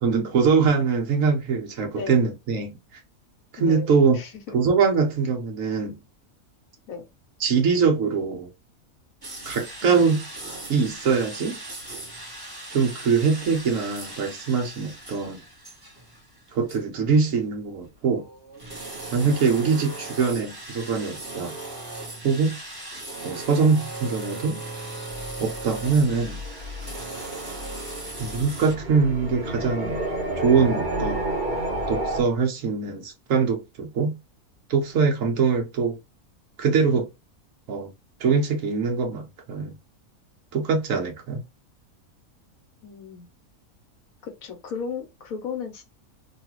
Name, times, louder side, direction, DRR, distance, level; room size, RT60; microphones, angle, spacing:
voice 1, 0.0-2.8 3.5-4.2 4.5-6.0 7.4-8.5 9.5-10.2 10.7-11.6 12.7-15.4 16.5-18.3 19.1-21.5 22.2-22.6 23.2-24.6 25.4-26.4 28.2-30.0 30.4-31.2 31.9-34.2 34.7-36.0 36.6-37.1 37.7-37.9 38.2-39.7 40.5-41.4, right 5 dB, 65° right, 1.2 m, -23 dB
voice 2, 3.6-3.9 4.1-4.6 6.9-7.0 9.8-10.2 42.8-43.3 44.2-45.8, left 6 dB, 70° left, 1.3 m, -36 dB
sound 1, 9.2-16.4 16.7-16.8 17.8-28.7, right 2 dB, 15° right, 1.1 m, -38 dB
sound 2, 25.1-32.2, right 1 dB, 40° right, 0.8 m, -31 dB
3.2 x 2.4 x 2.9 m
omnidirectional pair, 1.5 m